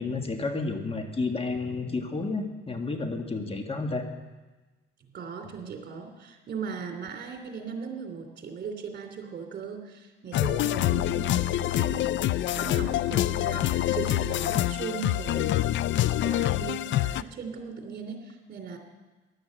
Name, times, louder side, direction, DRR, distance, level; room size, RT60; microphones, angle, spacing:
voice 1, 0.0-4.0, left 3 dB, 30° left, 5 dB, 1.6 m, -31 dB
voice 2, 5.1-15.6 16.2-18.8, right 6 dB, 55° right, 4 dB, 3.0 m, -38 dB
sound 1, 10.3-17.2, left 14 dB, 70° left, 0.5 m, -26 dB
15.5 x 11.5 x 7.6 m, 1.2 s
cardioid pair, 90°, 20 cm